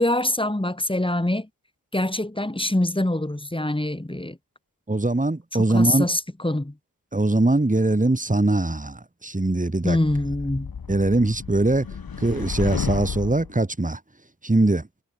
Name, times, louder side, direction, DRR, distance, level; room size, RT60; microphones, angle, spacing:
voice 1, 0.0-1.5 1.9-4.4 5.7-6.7 9.8-10.7, left 1 dB, 15° left, 5.2 m, -24 dB
voice 2, 4.9-6.1 7.1-10.0 10.9-11.9 12.2-14.0 14.4-14.9, right 2 dB, 20° right, 3.9 m, -21 dB
sound 1, 10.0-13.5, left 6 dB, 80° left, 6.8 m, -32 dB
cardioid pair, 50°, 35 cm